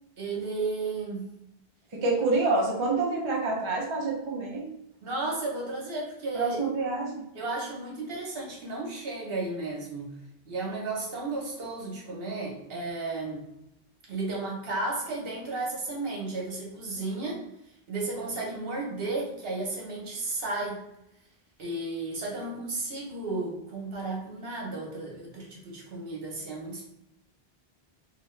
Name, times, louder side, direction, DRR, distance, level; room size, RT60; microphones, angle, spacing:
voice 1, 0.2-1.2 5.0-6.6 7.3-10.1 10.5-13.5 14.1-17.4 17.9-20.8 21.6-26.9, right 2 dB, 65° right, -3 dB, 1.1 m, -33 dB
voice 2, 1.9-4.7 6.3-7.2, right 3 dB, 35° right, -3 dB, 0.6 m, -27 dB
2.9 x 2.3 x 3.1 m, 0.81 s
omnidirectional pair, 1.1 m